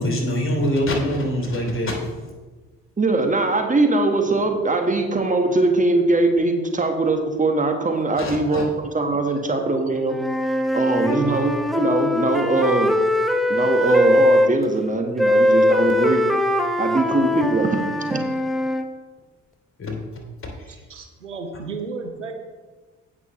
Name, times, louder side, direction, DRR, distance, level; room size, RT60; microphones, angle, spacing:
voice 1, 0.0-2.1 8.2-8.6 11.0-11.4 19.8-20.1, equal, 35° left, 1 dB, 2.9 m, -24 dB
voice 2, 3.0-10.2 10.7-13.0 13.5-16.3 16.8-17.8 18.1-18.2, right 2 dB, 20° right, 4 dB, 1.4 m, -21 dB
Wind instrument woodwind instrument, 10.1-14.5 15.2-18.9, left 1 dB, ahead, 0.8 m, -21 dB
voice 3, 20.7-22.3, right 4 dB, 90° right, 5 dB, 0.7 m, -33 dB
16.5 x 6.1 x 3.1 m, 1.3 s
figure-of-eight pair, 40°, 36 cm